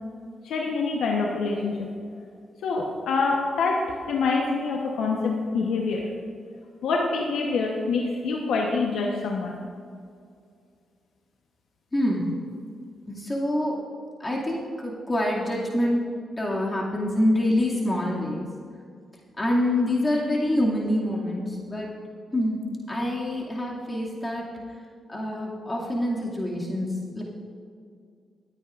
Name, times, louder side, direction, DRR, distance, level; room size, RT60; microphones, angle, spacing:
voice 1, 0.4-1.9 2.6-6.1 6.8-9.5, left 4 dB, 80° left, -1 dB, 1.0 m, -26 dB
voice 2, 11.9-12.2 13.1-13.7 14.2-16.1 16.4-18.4 19.4-21.9 22.3-22.6 22.9-24.4 25.1-27.2, left 1 dB, 25° left, -3 dB, 2.3 m, -26 dB
18.5 x 9.1 x 2.5 m, 2.3 s
cardioid pair, 65°, 0 cm